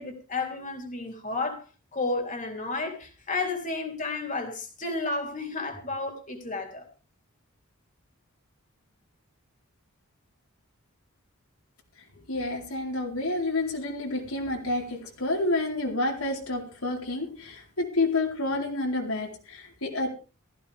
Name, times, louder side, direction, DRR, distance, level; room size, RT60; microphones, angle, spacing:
voice 1, 0.0-1.6 1.9-6.8, left 3 dB, 35° left, 3.6 m, -32 dB
voice 2, 12.3-20.1, left 2 dB, 80° left, 4.4 m, -29 dB
15.5 x 15.0 x 3.6 m
head